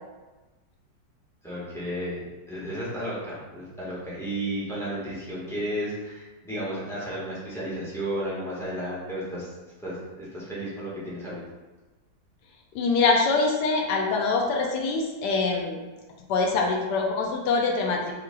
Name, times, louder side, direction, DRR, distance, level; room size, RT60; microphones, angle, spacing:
voice 1, 1.4-2.2 2.5-9.5 9.8-11.4, right 1 dB, ahead, -8 dB, 1.1 m, -33 dB
voice 2, 12.7-15.8 16.3-18.1, left 3 dB, 85° left, 0 dB, 1.2 m, -24 dB
5.7 x 3.1 x 2.2 m, 1.2 s
omnidirectional pair, 1.8 m